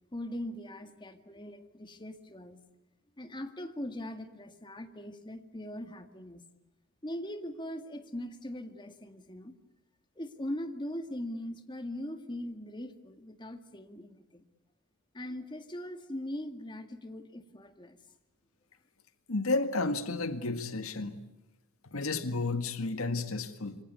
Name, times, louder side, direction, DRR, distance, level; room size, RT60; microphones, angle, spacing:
voice 1, 0.1-2.6 3.2-6.4 7.0-9.6 10.2-14.4 15.1-18.0, left 1 dB, 20° left, 1.9 m, -40 dB
voice 2, 19.3-21.2 21.8-23.8, left 3 dB, 75° left, 1.8 m, -32 dB
27.0 x 25.0 x 8.3 m
head